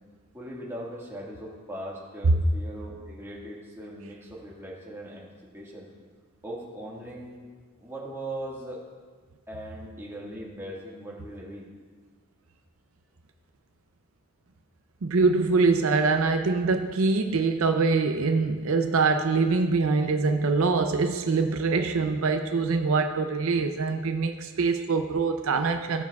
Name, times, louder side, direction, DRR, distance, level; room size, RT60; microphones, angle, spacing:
voice 1, 0.3-5.3 5.5-5.9 6.4-7.5 7.8-8.8 9.5-11.7, right 1 dB, 10° right, -5 dB, 1.6 m, -39 dB
voice 2, 15.0-26.0, right 4 dB, 75° right, 7 dB, 0.5 m, -24 dB
15.5 x 7.0 x 2.3 m, 1.5 s
head